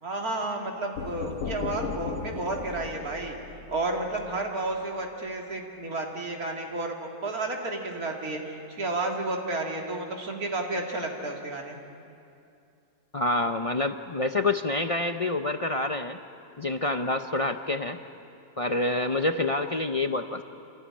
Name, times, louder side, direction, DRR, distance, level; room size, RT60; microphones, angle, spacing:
voice 1, 0.0-3.4 3.7-11.8, right 2 dB, 75° right, 1 dB, 3.0 m, -32 dB
sound 1, 1.0-4.7, left 5 dB, 85° left, 1.6 m, -36 dB
voice 2, 13.1-16.2 16.6-18.0 18.6-20.4, left 2 dB, 55° left, 7 dB, 0.4 m, -27 dB
26.5 x 17.0 x 9.9 m, 2.6 s
omnidirectional pair, 1.6 m